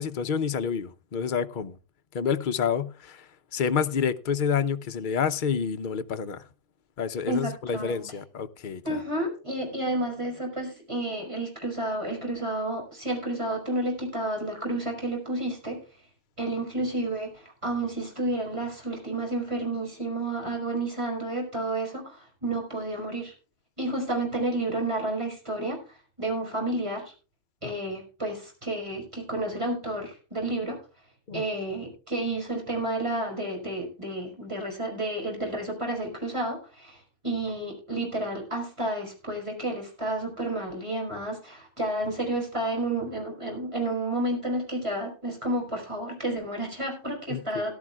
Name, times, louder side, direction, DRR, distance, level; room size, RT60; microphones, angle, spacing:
voice 1, 0.0-1.8 2.1-3.3 3.5-6.4 7.0-9.0 27.6-27.7 31.3-31.4 47.3-47.6, left 6 dB, 45° left, 0.8 m, -28 dB
voice 2, 7.3-8.1 8.8-15.8 16.4-23.3 23.8-27.1 27.6-30.8 31.3-47.7, right 1 dB, 25° right, 4.8 m, -31 dB
18.0 x 12.0 x 2.3 m
omnidirectional pair, 1.3 m